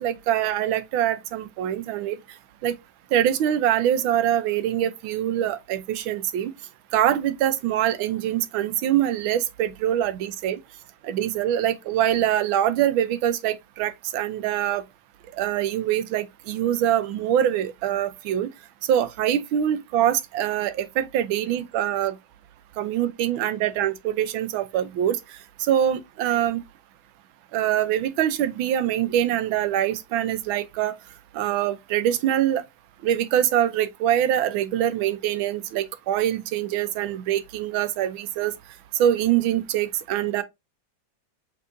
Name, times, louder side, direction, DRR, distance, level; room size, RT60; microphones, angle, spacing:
voice 1, 0.0-2.2 2.6-2.7 3.1-6.5 6.9-10.6 11.0-14.8 15.3-18.5 18.8-22.2 22.8-26.6 27.5-31.0 31.3-32.6 33.0-38.5 38.9-40.4, right 11 dB, 90° right, 1.4 m, -24 dB
5.6 x 3.5 x 2.5 m
omnidirectional pair, 2.1 m